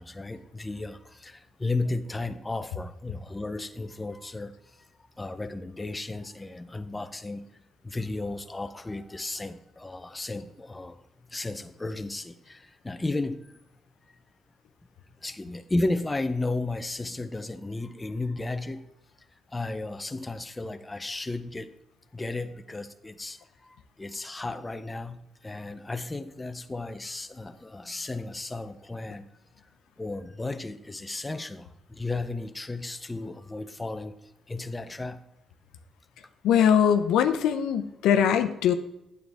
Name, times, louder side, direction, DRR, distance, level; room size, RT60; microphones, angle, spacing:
voice 1, 0.0-4.5 5.2-7.5 7.8-11.0 11.3-13.5 15.2-18.8 19.5-21.7 22.1-29.3 30.0-34.2 34.5-35.2, left 2 dB, 15° left, 9 dB, 0.6 m, -34 dB
voice 2, 36.4-38.7, left 8 dB, 85° left, 8 dB, 0.7 m, -21 dB
9.0 x 7.9 x 3.5 m, 0.88 s
cardioid pair, 90°, 0 cm